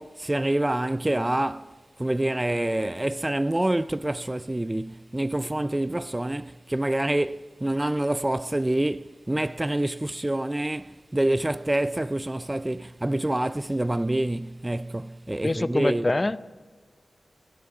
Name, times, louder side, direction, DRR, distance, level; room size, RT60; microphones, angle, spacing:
voice 1, 0.0-1.7 2.0-16.1, right 1 dB, 20° right, 0.4 m, -27 dB
voice 2, 15.4-16.4, left 2 dB, 35° left, 0.6 m, -24 dB
22.0 x 13.0 x 4.9 m
cardioid pair, 55°, 0 cm